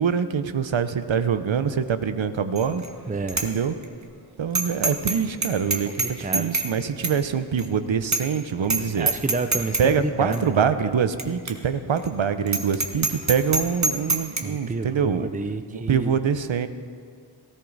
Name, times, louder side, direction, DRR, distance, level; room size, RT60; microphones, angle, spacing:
voice 1, 0.0-2.8 3.4-3.7 4.4-9.1 9.8-15.3 15.7-16.7, right 7 dB, 75° right, 11 dB, 0.8 m, -24 dB
Bicycle bell, 2.6-2.9 3.3-3.5 3.8-3.9 4.5-5.2 5.4-6.7 7.0-7.2 7.6-7.7 8.1-8.4 8.6-8.8 9.1-9.8 10.3-10.4 11.2-11.3 11.5-11.6 12.0-12.1 12.5-14.4, right 3 dB, 35° right, 1.4 m, -24 dB
voice 2, 3.1-3.4 6.0-6.5 9.0-10.9 14.4-16.2, right 3 dB, 20° right, 9 dB, 0.6 m, -30 dB
18.5 x 13.5 x 4.0 m, 2.1 s
wide cardioid pair, 60°, 46 cm